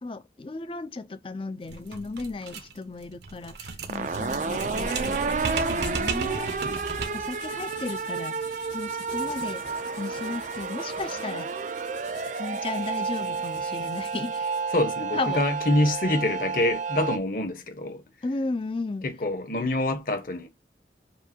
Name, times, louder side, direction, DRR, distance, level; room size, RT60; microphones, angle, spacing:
voice 1, 0.0-6.6 7.1-8.4 8.7-9.6 10.0-11.5 12.4-14.5 15.1-15.4 18.2-19.0, left 3 dB, 30° left, 0.5 m, -35 dB
sound 1, 1.6-7.4, right 4 dB, 70° right, 0.8 m, -35 dB
sound 2, 3.8-17.2, right 5 dB, 45° right, 0.4 m, -31 dB
sound 3, 4.0-14.7, left 5 dB, 85° left, 2.0 m, -46 dB
voice 2, 14.7-18.0 19.0-20.5, left 1 dB, 50° left, 1.1 m, -26 dB
6.8 x 2.6 x 2.7 m
head